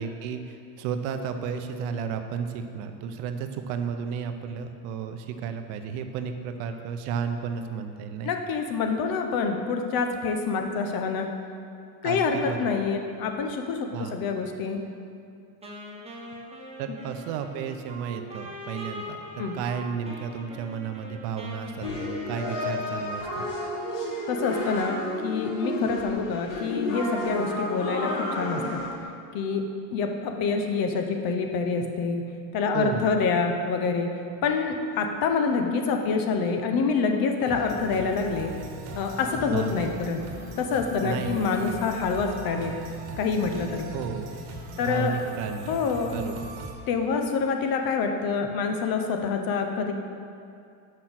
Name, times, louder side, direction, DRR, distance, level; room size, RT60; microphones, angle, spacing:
voice 1, 0.0-8.3 12.0-12.7 13.9-14.2 16.8-19.2 19.5-23.4 32.7-33.1 39.5-39.8 41.0-41.4 43.9-44.3 44.8-46.4, right 7 dB, 70° right, 7 dB, 0.8 m, -33 dB
voice 2, 8.2-11.3 12.0-14.8 19.4-19.5 24.3-28.1 28.4-28.8 29.3-29.6 29.9-32.3 32.5-34.1 34.4-38.5 38.9-40.2 40.6-42.8 43.2-43.9 44.8-45.1 45.7-46.1 46.9-49.9, left 5 dB, 45° left, 4 dB, 0.8 m, -26 dB
Wind instrument woodwind instrument, 15.6-23.5, equal, 10° right, 1.2 m, -42 dB
sound 1, 21.8-28.9, left 1 dB, 65° left, 2.0 m, -31 dB
sound 2, 37.5-46.7, right 1 dB, 45° right, 1.3 m, -40 dB
5.9 x 5.3 x 6.2 m, 2.4 s
supercardioid pair, 125°, 49 cm